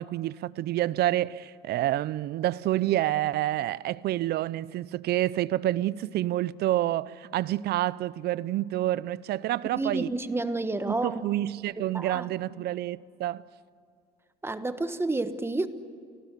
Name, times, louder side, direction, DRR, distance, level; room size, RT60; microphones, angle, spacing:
voice 1, 0.0-10.1 10.9-13.4, right 14 dB, 65° right, 0.6 m, -28 dB
voice 2, 9.8-11.2 11.9-12.3 14.4-15.7, right 2 dB, 15° right, 1.3 m, -29 dB
28.5 x 19.0 x 8.3 m
cardioid pair, 105°, 18 cm